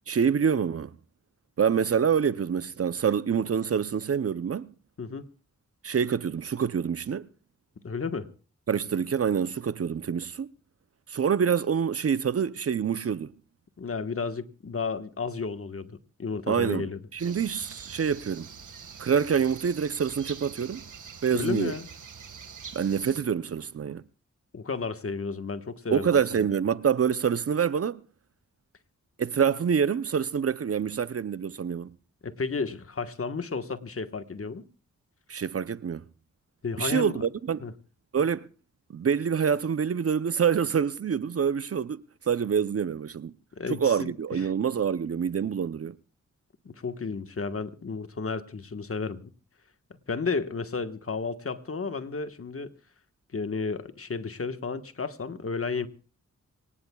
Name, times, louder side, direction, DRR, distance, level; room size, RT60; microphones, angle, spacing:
voice 1, 0.1-1.0 1.6-4.7 5.8-7.3 8.7-10.5 11.1-13.3 16.5-18.5 19.0-20.8 21.2-21.8 22.7-24.0 25.9-28.0 29.2-31.9 35.3-36.1 36.8-37.7 38.1-38.5 38.9-43.3 43.7-45.9, right 7 dB, 50° right, 0.6 m, -26 dB
voice 2, 7.8-8.3 13.8-17.0 21.3-21.9 24.5-26.2 32.2-34.6 36.6-37.2 37.6-37.7 43.6-44.5 46.6-49.3 50.1-52.7 53.3-55.9, left 4 dB, 45° left, 1.4 m, -32 dB
sound 1, 17.2-23.2, right 6 dB, 75° right, 1.8 m, -45 dB
25.5 x 18.0 x 2.3 m
cardioid pair, 50°, 31 cm